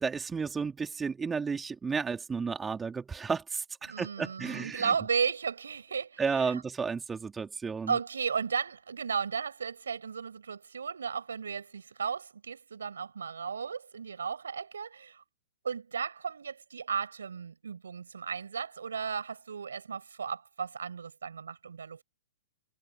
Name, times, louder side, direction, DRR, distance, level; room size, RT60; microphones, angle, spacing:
voice 1, 0.0-4.9 6.2-8.0, right 5 dB, 15° right, 3.3 m, -32 dB
voice 2, 3.9-6.6 7.9-15.2 15.6-22.0, right 6 dB, 80° right, 7.5 m, -35 dB
hypercardioid pair, 115°, 0 cm